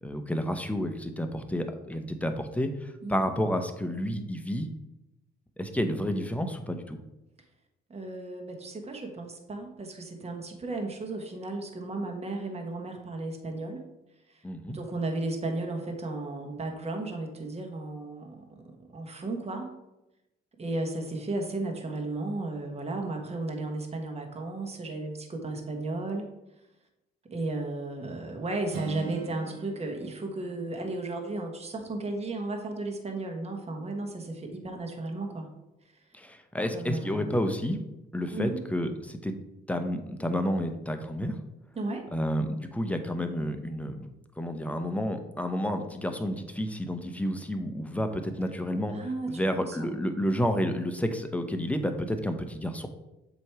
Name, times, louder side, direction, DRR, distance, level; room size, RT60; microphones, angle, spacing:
voice 1, 0.0-4.7 5.6-7.0 14.4-14.8 36.1-37.8 38.1-39.3 39.7-41.3 42.1-44.1 44.4-48.9 49.3-52.9, equal, 5° left, 6 dB, 0.8 m, -30 dB
voice 2, 7.9-13.8 14.3-19.7 20.6-26.3 27.3-35.5 35.9-36.0 36.7-37.4 38.3-38.6 41.7-42.0 48.9-49.9, right 2 dB, 30° right, 3 dB, 1.3 m, -34 dB
Acoustic guitar, 28.7-32.6, right 4 dB, 85° right, 0.9 m, -43 dB
7.7 x 3.0 x 4.7 m, 0.94 s
cardioid pair, 90°, 20 cm